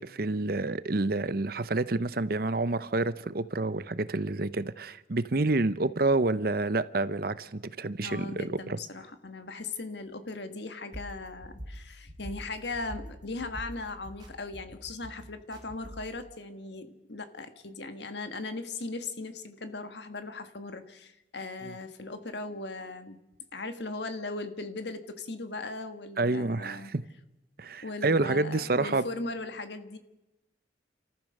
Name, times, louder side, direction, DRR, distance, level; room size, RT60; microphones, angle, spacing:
voice 1, 0.0-8.8 21.6-21.7 26.2-27.0 27.6-29.0, right 2 dB, 50° right, 0.8 m, -28 dB
voice 2, 8.0-23.2 23.5-26.9 27.8-30.0, left 3 dB, 65° left, 1.7 m, -38 dB
sound 1, 10.9-16.2, equal, 20° right, 3.0 m, -45 dB
29.5 x 14.0 x 6.6 m
head